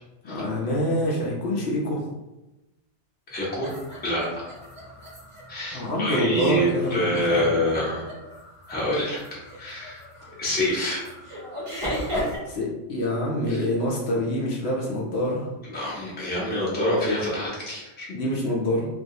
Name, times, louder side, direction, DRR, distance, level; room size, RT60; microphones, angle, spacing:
voice 1, 0.2-2.1 5.7-7.5 12.5-15.5 18.1-18.9, left 1 dB, 65° left, -3 dB, 0.8 m, -26 dB
voice 2, 3.3-3.7 4.0-4.2 5.5-8.1 8.7-10.0 10.4-11.0 13.5-13.6 15.7-18.1, equal, 10° left, -7 dB, 0.5 m, -26 dB
sound 1, 3.6-12.4, equal, 30° right, 0.7 m, -36 dB
2.4 x 2.3 x 2.7 m, 1.0 s
omnidirectional pair, 1.2 m